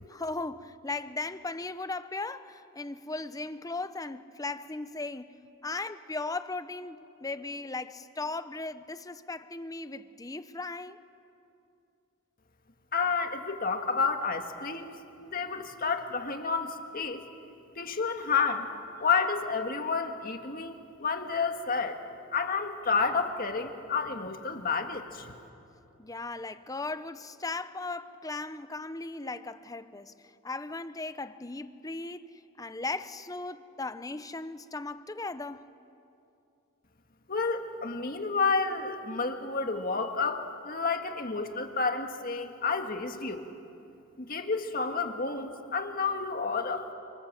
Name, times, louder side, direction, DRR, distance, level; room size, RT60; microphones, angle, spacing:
voice 1, 0.1-5.4 5.6-11.0 26.0-30.1 30.4-32.3 32.6-35.7, left 3 dB, 15° left, 0.7 m, -37 dB
voice 2, 12.9-17.2 17.8-18.7 19.0-22.0 22.3-25.3 37.3-43.4 44.2-46.9, left 4 dB, 45° left, 1.8 m, -30 dB
30.0 x 26.0 x 7.6 m
head